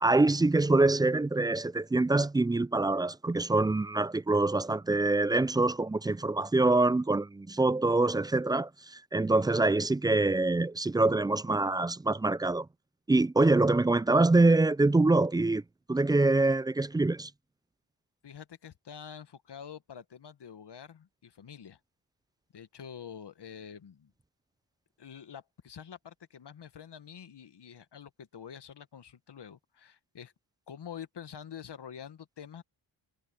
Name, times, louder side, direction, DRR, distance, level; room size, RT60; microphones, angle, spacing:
voice 1, 0.0-12.7 13.1-15.6 15.9-17.3, right 2 dB, 10° right, 0.3 m, -25 dB
voice 2, 18.2-21.8 22.5-24.1 25.0-30.3 30.7-32.6, left 8 dB, 55° left, 1.6 m, -47 dB
supercardioid pair, 50°, 49 cm